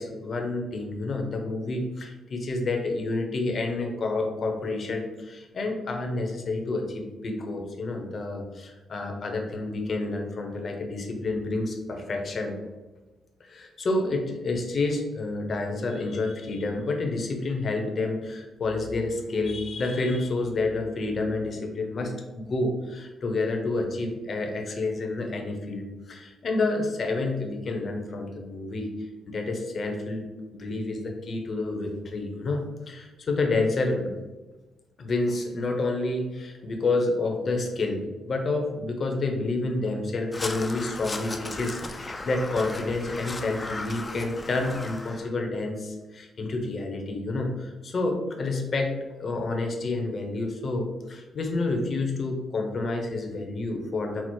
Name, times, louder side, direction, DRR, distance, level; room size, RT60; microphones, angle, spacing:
voice 1, 0.0-12.6 13.4-28.9 29.3-30.3 30.5-34.1 35.0-48.9 49.2-54.2, left 2 dB, 50° left, 2 dB, 0.7 m, -29 dB
Crow, 40.3-45.3, left 2 dB, 25° left, 0.4 m, -36 dB
4.5 x 2.0 x 4.3 m, 1.2 s
cardioid pair, 90°, 0 cm